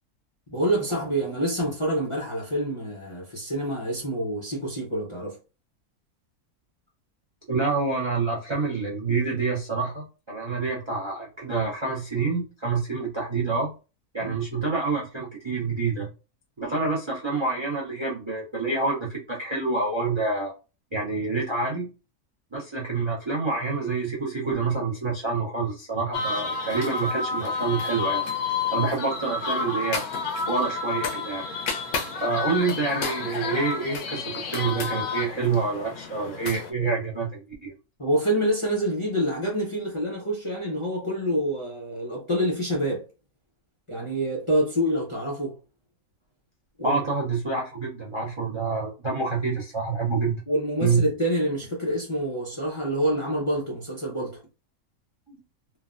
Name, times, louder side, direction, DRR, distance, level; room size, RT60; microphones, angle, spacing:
voice 1, 0.5-5.4 14.2-14.3 38.0-43.1 43.9-45.6 46.8-47.0 50.5-54.4, right 1 dB, 35° left, 0.5 m, -27 dB
voice 2, 7.5-13.7 14.1-16.1 16.6-20.5 20.9-21.9 22.5-28.2 28.7-30.0 30.5-31.5 32.2-37.7 46.8-50.4 50.8-51.0 55.3-55.4, right 4 dB, 40° right, 0.4 m, -27 dB
sound 1, 26.1-36.7, left 4 dB, 85° left, 1.1 m, -30 dB
3.2 x 2.1 x 2.4 m
omnidirectional pair, 1.5 m